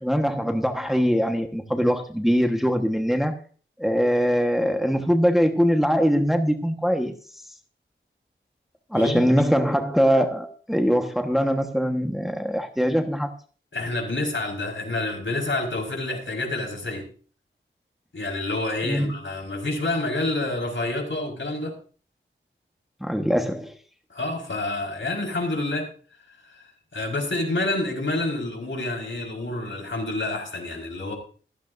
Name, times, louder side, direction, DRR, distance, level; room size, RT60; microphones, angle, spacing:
voice 1, 0.0-3.3 3.8-7.1 8.9-13.3 18.8-19.1 23.0-23.7, equal, ahead, 1.3 m, -22 dB
voice 2, 13.7-17.1 18.1-21.8 24.1-25.9 26.4-26.6 26.9-31.1, left 2 dB, 65° left, 4.9 m, -28 dB
17.0 x 14.5 x 2.7 m
wide cardioid pair, 75°, 21 cm